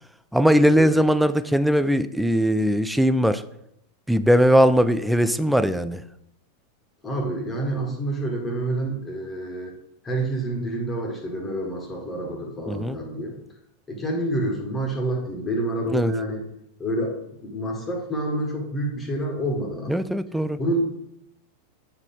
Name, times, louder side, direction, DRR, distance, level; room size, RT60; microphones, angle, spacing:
voice 1, 0.3-3.4 4.1-6.0 12.7-13.0 15.9-16.1 19.9-20.6, equal, ahead, 12 dB, 0.3 m, -20 dB
voice 2, 7.0-9.7 10.0-13.3 13.9-16.4 16.8-20.0 20.6-20.8, right 1 dB, 15° left, 1 dB, 1.6 m, -28 dB
8.6 x 4.2 x 3.8 m, 0.78 s
figure-of-eight pair, 90°, 0 cm